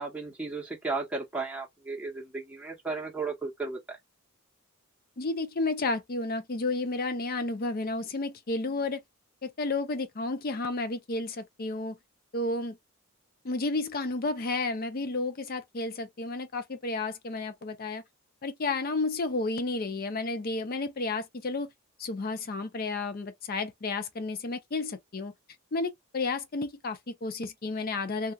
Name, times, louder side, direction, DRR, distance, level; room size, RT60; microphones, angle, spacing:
voice 1, 0.0-4.0, right 3 dB, 5° right, 0.9 m, -35 dB
voice 2, 5.2-9.0 9.4-12.0 12.3-12.8 13.4-18.0 18.4-21.7 22.0-25.3 25.7-28.3, left 3 dB, 45° left, 0.5 m, -32 dB
2.8 x 2.3 x 2.3 m
head